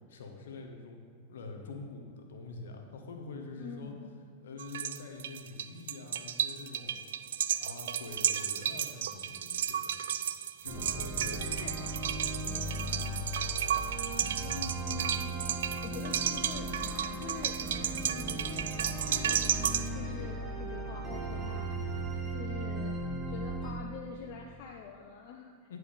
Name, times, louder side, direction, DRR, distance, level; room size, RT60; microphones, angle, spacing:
voice 1, 0.1-1.0 1.3-3.9 4.4-7.0 7.6-10.0 10.6-13.2 25.7-25.8, left 3 dB, 60° left, 3 dB, 1.1 m, -45 dB
voice 2, 3.6-4.1 11.4-11.7 14.4-15.4 15.8-17.6 18.0-22.9 23.3-25.8, left 6 dB, 45° left, 2 dB, 0.6 m, -45 dB
sound 1, 4.6-19.9, right 9 dB, 60° right, 0.3 m, -33 dB
sound 2, 10.7-23.7, right 2 dB, 10° right, 1.2 m, -37 dB
9.8 x 4.8 x 5.1 m, 2.1 s
figure-of-eight pair, 90°, 0 cm